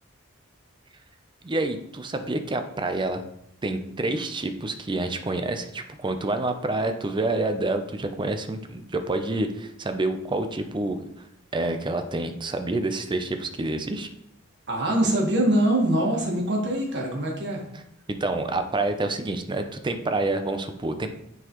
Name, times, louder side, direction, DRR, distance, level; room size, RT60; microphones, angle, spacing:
voice 1, 1.4-3.2 3.6-11.0 11.5-14.1 18.2-21.1, right 2 dB, 20° right, 7 dB, 0.5 m, -28 dB
voice 2, 14.7-17.6, right 1 dB, 55° right, -1 dB, 1.5 m, -23 dB
9.4 x 4.0 x 3.0 m, 0.78 s
head